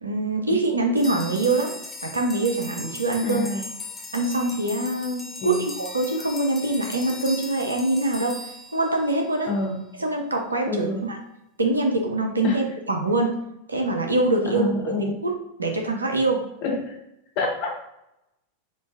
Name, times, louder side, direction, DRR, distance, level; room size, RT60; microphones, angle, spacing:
voice 1, 0.0-1.7 2.0-3.6 4.1-8.4 8.7-9.5 10.0-11.2 11.6-13.4 13.7-14.7 14.9-15.3 15.6-16.4, right 2 dB, 80° right, 2 dB, 0.5 m, -24 dB
sound 1, 1.0-9.5, left 2 dB, 10° left, 0.5 m, -39 dB
voice 2, 3.2-3.6 5.4-5.6 9.5-9.8 10.7-11.0 12.4-12.6 14.4-15.1 16.6-17.0 17.4-17.8, left 3 dB, 45° left, 1 dB, 0.8 m, -27 dB
3.8 x 2.4 x 2.5 m, 0.86 s
figure-of-eight pair, 90°, 0 cm